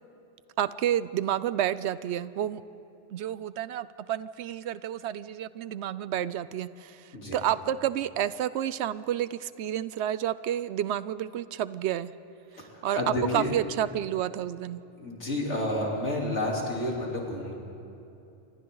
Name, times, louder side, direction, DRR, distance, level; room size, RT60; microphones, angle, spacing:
voice 1, 0.6-2.6 3.1-12.1 12.5-14.8, right 11 dB, 70° right, 16 dB, 0.9 m, -30 dB
voice 2, 12.6-13.5 15.0-17.5, left 1 dB, 75° left, -2 dB, 3.9 m, -30 dB
28.5 x 24.5 x 3.9 m, 2.8 s
omnidirectional pair, 1.2 m